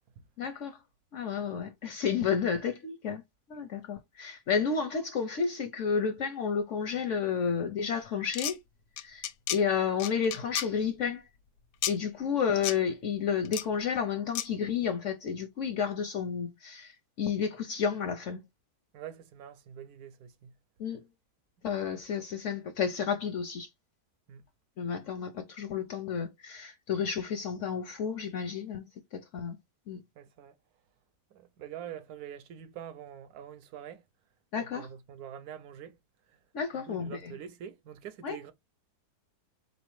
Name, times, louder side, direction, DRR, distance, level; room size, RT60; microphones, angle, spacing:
voice 1, 0.4-0.8 1.1-3.2 3.5-8.6 9.0-11.2 11.9-18.4 20.8-21.0 21.6-23.7 24.8-29.6 29.9-30.0 34.5-34.9 36.5-37.3 38.2-38.4, left 6 dB, 70° left, 0.7 m, -31 dB
sound 1, 8.2-8.5 9.0-9.6 10.0-10.7 11.8-11.9 12.6-12.8 13.5-13.6 14.4-14.5, left 12 dB, 85° left, 1.1 m, -32 dB
voice 2, 18.9-20.5 24.3-24.4 30.2-30.5 31.3-34.0 34.5-36.0 36.9-38.5, right 9 dB, 70° right, 1.0 m, -45 dB
3.9 x 3.1 x 3.1 m
omnidirectional pair, 1.7 m